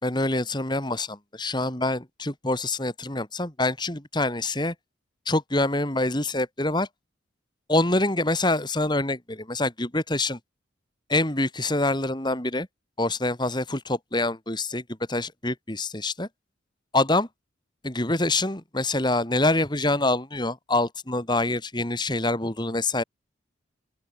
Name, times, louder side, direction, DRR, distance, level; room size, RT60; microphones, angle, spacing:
voice 1, 0.0-4.7 5.3-6.9 7.7-10.4 11.1-12.7 13.0-14.8 15.1-16.3 16.9-17.3 17.8-23.0, left 2 dB, 20° left, 2.5 m, -25 dB
open air
head